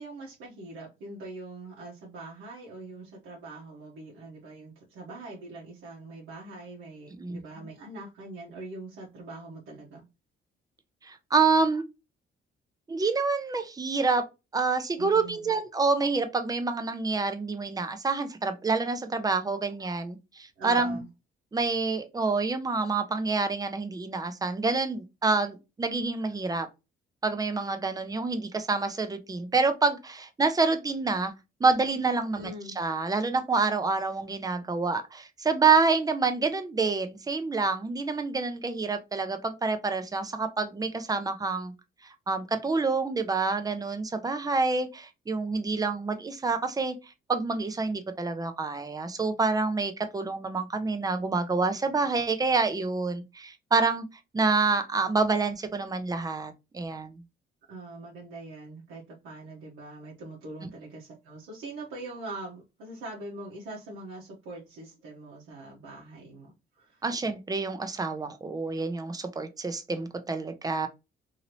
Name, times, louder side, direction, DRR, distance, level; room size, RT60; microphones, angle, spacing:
voice 1, 0.0-10.0 15.0-15.5 20.6-21.1 32.3-32.7 57.7-67.0, right 2 dB, 90° right, -3 dB, 0.9 m, -43 dB
voice 2, 11.0-11.8 12.9-14.2 14.5-21.0 21.5-26.7 27.2-31.3 31.6-32.5 32.8-41.7 42.0-47.0 47.3-54.1 54.3-57.2 67.0-70.9, right 4 dB, 20° right, 8 dB, 0.6 m, -27 dB
2.8 x 2.8 x 2.9 m, 0.26 s
cardioid pair, 90°, 20 cm